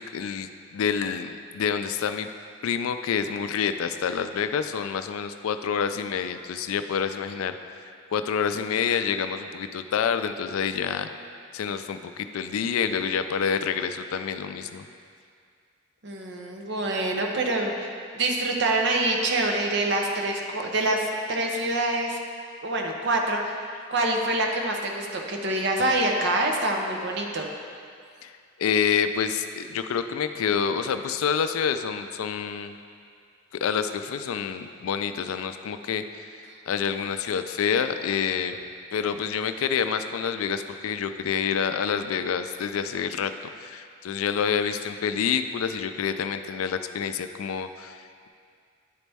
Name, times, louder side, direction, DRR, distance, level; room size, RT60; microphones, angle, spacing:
voice 1, 0.0-2.3 2.6-7.5 8.1-11.1 11.5-14.8 28.2-28.3 28.6-32.7 33.5-36.3 36.7-38.5 38.9-43.3 43.6-48.3, left 7 dB, 85° left, 9 dB, 0.3 m, -27 dB
voice 2, 16.0-22.2 22.6-23.6 23.9-27.5 36.5-36.6, right 2 dB, 55° right, 1 dB, 0.7 m, -26 dB
10.0 x 4.1 x 3.4 m, 2.3 s
head